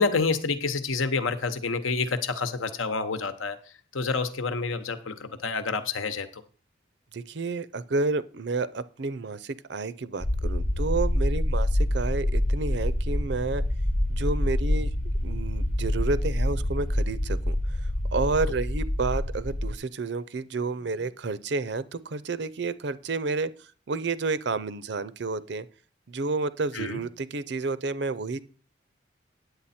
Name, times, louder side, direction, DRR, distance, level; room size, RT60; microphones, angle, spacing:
voice 1, 0.0-3.6 3.9-6.4 26.7-27.0, left 4 dB, 85° left, 10 dB, 1.0 m, -28 dB
voice 2, 7.1-13.6 14.1-14.9 15.2-17.6 18.1-25.7 26.1-28.4, right 3 dB, 60° right, 17 dB, 0.5 m, -30 dB
sound 1, 10.2-19.7, left 1 dB, 35° left, 0.8 m, -26 dB
9.8 x 8.1 x 4.3 m, 0.40 s
head